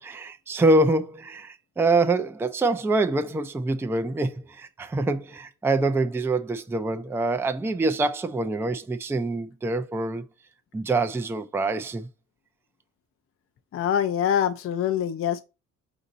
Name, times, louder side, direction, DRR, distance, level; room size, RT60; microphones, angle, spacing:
voice 1, 0.0-10.2 10.7-12.1, right 2 dB, 10° right, 0.4 m, -25 dB
voice 2, 13.7-15.4, left 9 dB, 45° left, 0.5 m, -24 dB
5.0 x 2.7 x 3.9 m
cardioid pair, 90°, 30 cm